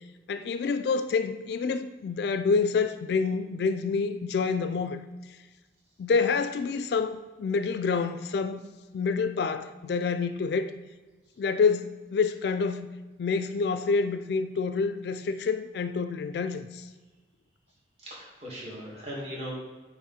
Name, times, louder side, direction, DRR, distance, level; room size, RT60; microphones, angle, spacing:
voice 1, 0.3-5.0 6.0-8.7 8.9-10.7 11.4-12.9 13.2-16.9, left 5 dB, 60° left, 0.3 m, -27 dB
voice 2, 18.0-19.6, equal, 35° right, 2.1 m, -38 dB
8.6 x 3.0 x 4.2 m
head